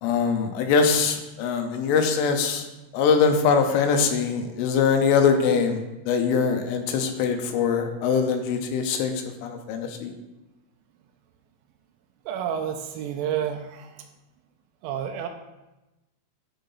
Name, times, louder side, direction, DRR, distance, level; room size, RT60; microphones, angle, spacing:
voice 1, 0.0-2.7 2.9-10.1, left 5 dB, 80° left, 5 dB, 3.1 m, -23 dB
voice 2, 12.3-14.1 14.8-15.3, right 9 dB, 85° right, 5 dB, 2.8 m, -30 dB
10.5 x 4.5 x 3.9 m, 1.0 s
omnidirectional pair, 5.7 m